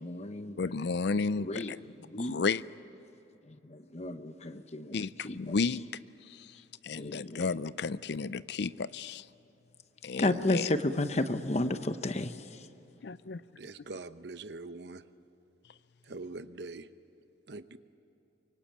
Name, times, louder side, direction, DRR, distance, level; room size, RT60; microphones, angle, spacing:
voice 1, 0.0-0.6 1.3-1.7 2.0-2.4 3.4-5.5 6.9-7.5 10.1-12.7, left 2 dB, 35° left, 10 dB, 0.9 m, -33 dB
voice 2, 0.6-1.8 2.3-2.6 4.9-5.8 6.8-9.2 10.0-10.7 13.0-13.4, left 4 dB, 60° left, 17 dB, 0.5 m, -32 dB
voice 3, 13.6-15.0 16.1-16.9 17.5-17.8, right 3 dB, 60° right, 12 dB, 0.9 m, -43 dB
25.0 x 23.5 x 8.7 m, 2.8 s
head